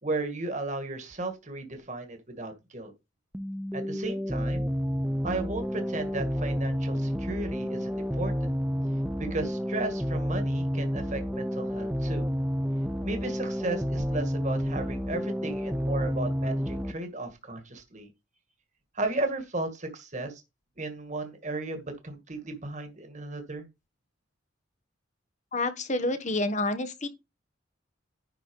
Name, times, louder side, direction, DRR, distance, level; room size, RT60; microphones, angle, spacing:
voice 1, 0.0-2.9 3.7-4.7 5.2-8.5 9.2-12.3 13.0-18.1 18.9-20.4 20.8-23.6, right 2 dB, 35° right, 1.9 m, -35 dB
sound 1, 3.3-16.9, equal, 5° right, 0.7 m, -30 dB
voice 2, 25.5-27.1, left 2 dB, 35° left, 1.3 m, -28 dB
11.0 x 4.3 x 5.3 m
head